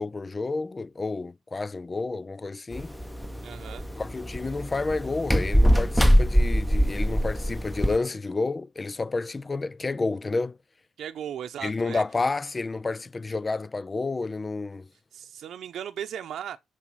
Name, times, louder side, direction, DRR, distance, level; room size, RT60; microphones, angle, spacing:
voice 1, 0.0-2.9 4.0-10.6 11.6-14.9, left 3 dB, 25° left, 0.4 m, -30 dB
sound 1, 2.7-8.0, equal, 5° left, 0.9 m, -23 dB
voice 2, 3.4-3.9 11.0-12.0 15.1-16.6, right 9 dB, 70° right, 0.8 m, -36 dB
7.2 x 6.5 x 6.3 m
cardioid pair, 90°, 0 cm